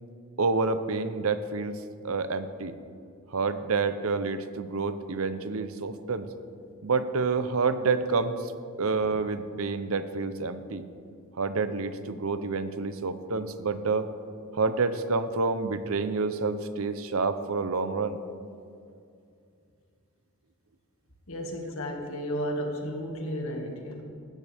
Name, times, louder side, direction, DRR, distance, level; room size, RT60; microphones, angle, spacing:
voice 1, 0.4-1.7 2.0-2.7 3.3-6.3 6.8-8.5 8.8-10.9 11.4-14.1 14.5-18.2, right 4 dB, 70° right, 11 dB, 0.7 m, -28 dB
voice 2, 21.3-24.0, equal, 70° left, 1 dB, 2.0 m, -33 dB
16.0 x 13.0 x 3.5 m, 2.4 s
head